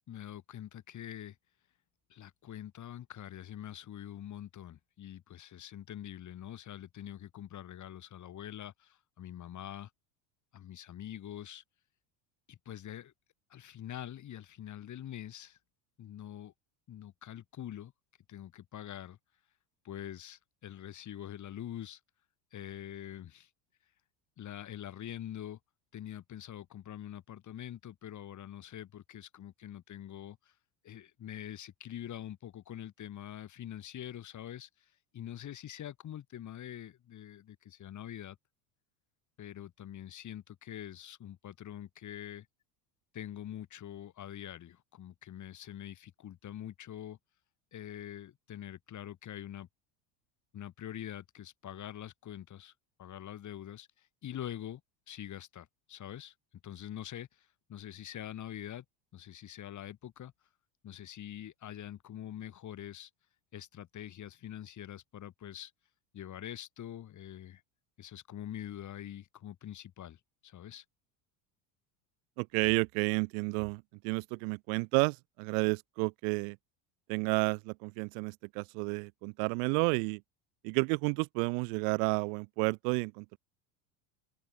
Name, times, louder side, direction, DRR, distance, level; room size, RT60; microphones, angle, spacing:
voice 1, 0.1-1.3 2.1-9.9 10.5-11.6 12.5-13.1 13.5-15.6 16.0-16.5 16.9-17.9 18.3-19.2 19.8-22.0 22.5-23.5 24.4-25.6 25.9-30.4 30.8-34.7 35.1-38.4 39.4-42.5 43.1-47.2 47.7-49.7 50.5-52.7 53.0-53.9 54.2-54.8 55.1-56.3 56.6-57.3 57.7-58.8 59.1-60.3 60.8-63.1 63.5-65.7 66.1-67.6 68.0-70.2 70.4-70.8, left 11 dB, 40° left, 5.0 m, -44 dB
voice 2, 72.4-76.6 77.1-80.2 80.6-83.4, right 40 dB or more, 70° right, 0.9 m, -31 dB
supercardioid pair, 120°, 45 cm